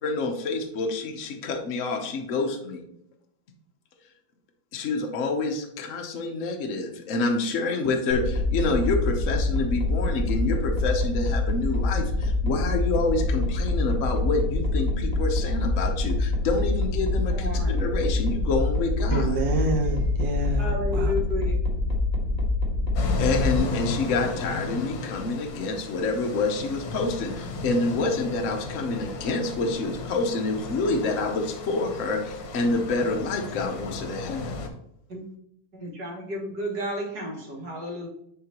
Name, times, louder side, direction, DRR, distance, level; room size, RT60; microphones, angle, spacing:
voice 1, 0.0-2.8 4.7-19.4 23.2-34.5, left 3 dB, 50° left, 1.1 m, -27 dB
sound 1, 8.1-23.6, left 2 dB, 25° left, 1.6 m, -25 dB
voice 2, 17.3-17.9 20.6-21.6 35.1-35.2 35.8-38.1, left 1 dB, 60° right, 2.3 m, -32 dB
voice 3, 19.1-21.3, right 2 dB, 75° right, 1.8 m, -28 dB
sound 2, 23.0-34.7, left 3 dB, 80° left, 1.6 m, -34 dB
10.5 x 3.8 x 2.9 m
omnidirectional pair, 2.0 m